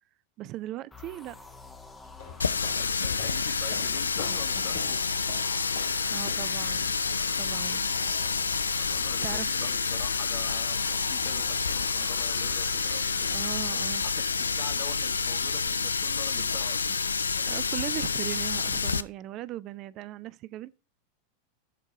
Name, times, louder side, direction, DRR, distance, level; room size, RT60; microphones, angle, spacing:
voice 1, 0.4-1.4 6.1-7.0 7.4-8.1 9.2-9.6 13.3-14.0 17.4-20.7, right 14 dB, 40° right, 0.4 m, -38 dB
sound 1, 0.9-14.4, left 4 dB, 10° left, 2.2 m, -48 dB
sound 2, 2.0-6.9, left 5 dB, 60° left, 2.0 m, -44 dB
Water tap faucet, 2.4-19.0, left 5 dB, 80° left, 0.4 m, -28 dB
voice 2, 2.7-5.2 8.5-13.3 13.7-17.0 17.3-17.6, left 8 dB, 45° left, 1.8 m, -44 dB
12.0 x 4.5 x 4.8 m
figure-of-eight pair, 90°, 0 cm